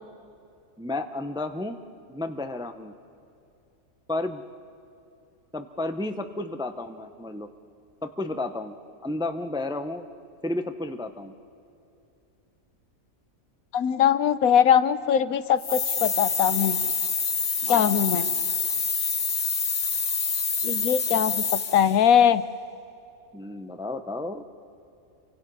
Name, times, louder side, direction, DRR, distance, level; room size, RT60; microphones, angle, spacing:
voice 1, 0.8-1.8 2.1-2.9 4.1-4.4 5.5-7.5 8.0-8.8 9.0-10.1 10.4-11.3 17.6-17.9 23.3-24.4, left 2 dB, 5° right, 8 dB, 0.6 m, -32 dB
voice 2, 13.7-16.8 17.7-18.3 20.6-22.4, left 9 dB, 80° left, 14 dB, 1.2 m, -21 dB
sound 1, 15.6-22.0, left 5 dB, 30° left, 0.7 m, -27 dB
29.5 x 24.0 x 5.5 m, 2.7 s
omnidirectional pair, 1.5 m